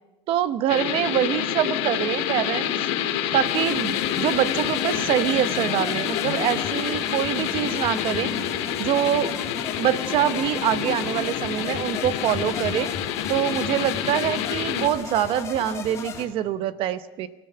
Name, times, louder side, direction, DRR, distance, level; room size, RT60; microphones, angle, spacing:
voice 1, 0.3-2.7 3.3-8.3 8.8-9.4 9.8-12.9 13.3-17.3, right 11 dB, 40° right, 14 dB, 0.9 m, -25 dB
sound 1, 0.7-14.9, left 10 dB, 65° left, 2.5 m, -27 dB
sound 2, 3.4-16.2, left 5 dB, 20° left, 2.5 m, -35 dB
25.5 x 15.0 x 6.8 m, 1.2 s
cardioid pair, 165°, 15 cm